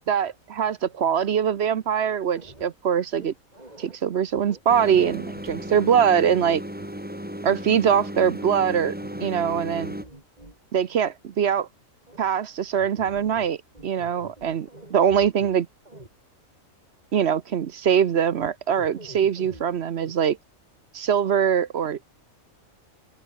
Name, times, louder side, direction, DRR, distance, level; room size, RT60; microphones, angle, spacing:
voice 1, 0.1-3.3 3.8-6.6 7.4-8.9 9.2-9.9 10.7-11.7 12.2-13.6 13.8-15.7 17.1-20.4 20.9-22.1, right 8 dB, 55° right, 1.0 m, -23 dB
sound 1, 2.3-2.7 3.1-4.0 4.3-6.4 6.7-6.9 8.5-10.5 12.1-12.2 12.7-13.5 13.7-15.5 15.8-16.1 18.3-18.5 18.7-19.6 20.0-20.3, right 1 dB, 30° right, 4.7 m, -46 dB
sound 2, 4.7-10.0, equal, 5° right, 3.8 m, -35 dB
open air
omnidirectional pair, 1.4 m